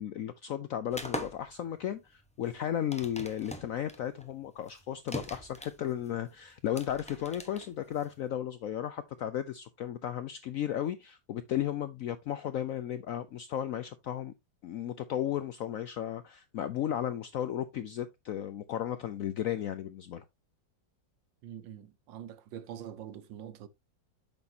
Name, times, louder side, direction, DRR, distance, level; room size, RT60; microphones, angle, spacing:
voice 1, 0.0-14.3 14.6-20.2, left 10 dB, 75° left, 0.7 m, -34 dB
sound 1, 0.9-8.3, equal, 5° left, 0.6 m, -42 dB
voice 2, 21.4-23.7, right 10 dB, 85° right, 1.5 m, -44 dB
8.6 x 6.2 x 2.8 m
omnidirectional pair, 2.0 m